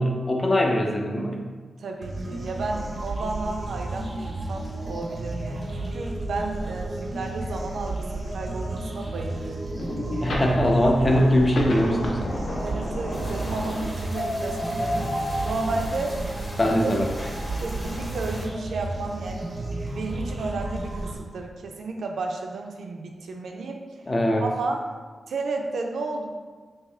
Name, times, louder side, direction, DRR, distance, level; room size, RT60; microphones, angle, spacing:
voice 1, 0.0-1.4 10.2-12.3 16.6-17.0 24.1-24.5, equal, 25° left, 1 dB, 0.4 m, -21 dB
voice 2, 1.8-9.7 12.6-16.2 17.6-19.5 19.9-23.8 24.4-24.8 25.3-26.3, right 3 dB, 85° right, 2 dB, 0.4 m, -33 dB
sound 1, 2.0-21.2, right 1 dB, 30° right, 0.5 m, -32 dB
sound 2, 9.7-15.9, left 1 dB, 65° left, 0.6 m, -31 dB
sound 3, 13.1-18.5, right 1 dB, 5° left, 0.8 m, -40 dB
3.6 x 2.7 x 3.2 m, 1.4 s
wide cardioid pair, 150°, 0 cm